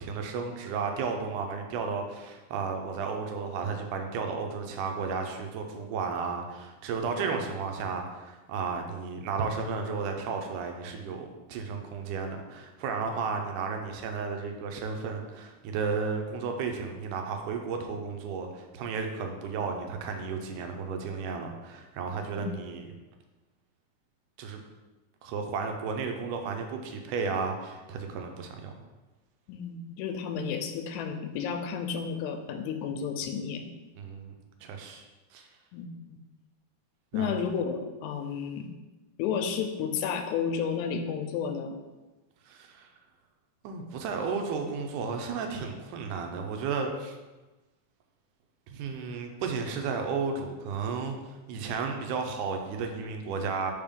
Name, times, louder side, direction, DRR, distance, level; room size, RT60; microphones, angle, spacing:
voice 1, 0.0-22.9 24.4-24.6 25.2-28.7 34.0-34.3 34.6-35.0 35.3-35.5 37.1-37.4 42.5-42.9 43.6-47.2 48.7-53.7, right 5 dB, 85° right, 4 dB, 2.2 m, -33 dB
voice 2, 29.5-33.6 35.7-35.9 37.1-38.7 39.2-41.8, left 6 dB, 80° left, 6 dB, 2.0 m, -32 dB
5.0 x 3.6 x 5.2 m, 1.1 s
omnidirectional pair, 3.6 m